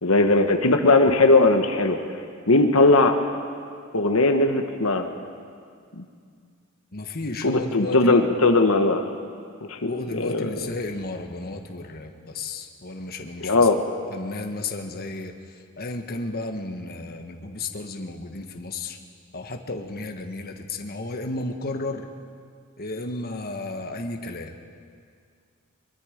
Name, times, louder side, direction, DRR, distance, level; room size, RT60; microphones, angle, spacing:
voice 1, 0.0-2.0 2.5-3.1 3.9-5.1 6.0-6.1 7.4-9.1 9.7-9.9 10.2-10.5 13.4-13.8, left 2 dB, 85° left, 5 dB, 1.3 m, -19 dB
voice 2, 6.9-8.3 9.8-13.7 14.1-19.0 19.3-22.1 22.8-24.6, left 2 dB, 50° left, 4 dB, 1.4 m, -33 dB
23.5 x 23.5 x 5.2 m, 2.2 s
head